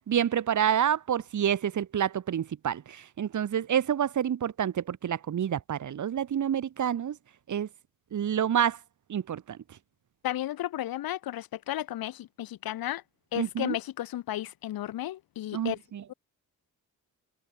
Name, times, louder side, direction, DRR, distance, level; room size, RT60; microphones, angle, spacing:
voice 1, 0.0-7.2 7.5-7.7 8.1-8.8 9.1-9.6 13.4-13.8 15.5-16.0, right 9 dB, 55° right, 2.8 m, -28 dB
voice 2, 10.2-13.0 13.3-15.8 16.1-16.2, left 13 dB, 80° left, 6.5 m, -33 dB
cardioid pair, 85°, 35 cm